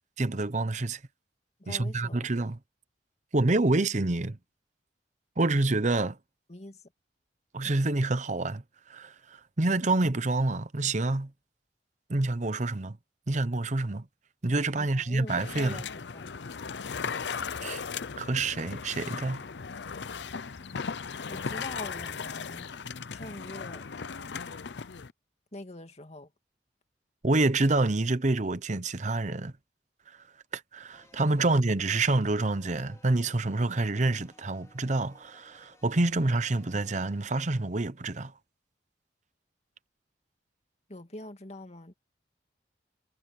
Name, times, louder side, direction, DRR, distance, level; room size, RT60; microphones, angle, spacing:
voice 1, 0.2-1.0 1.7-2.6 3.3-4.4 5.4-6.2 7.5-8.6 8.9-9.1 9.6-11.3 12.1-13.0 13.3-14.1 14.4-15.8 17.6-17.8 18.2-19.4 27.2-29.5 30.5-38.3, right 2 dB, 40° right, 0.9 m, -27 dB
voice 2, 1.6-2.3 6.5-6.8 14.8-16.3 21.3-22.7 23.1-23.9 25.5-26.3 40.9-41.9, left 1 dB, 40° left, 2.4 m, -43 dB
sound 1, 15.3-25.1, left 5 dB, 75° left, 0.7 m, -37 dB
sound 2, 30.9-37.4, left 2 dB, 15° left, 4.3 m, -61 dB
head